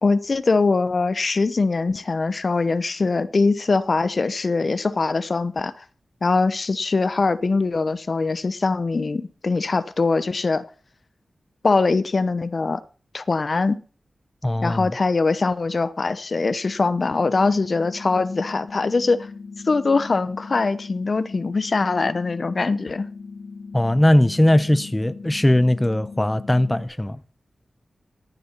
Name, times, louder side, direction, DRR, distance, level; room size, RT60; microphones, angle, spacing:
voice 1, 0.0-5.8 6.2-10.6 11.6-12.8 13.1-13.8 14.6-19.3 19.7-23.1, left 3 dB, 55° left, 0.8 m, -22 dB
voice 2, 14.4-14.9 23.7-27.2, left 1 dB, 15° left, 0.7 m, -19 dB
sound 1, 16.8-26.8, left 4 dB, 85° left, 1.4 m, -39 dB
14.0 x 6.9 x 5.7 m
cardioid pair, 65°, 0 cm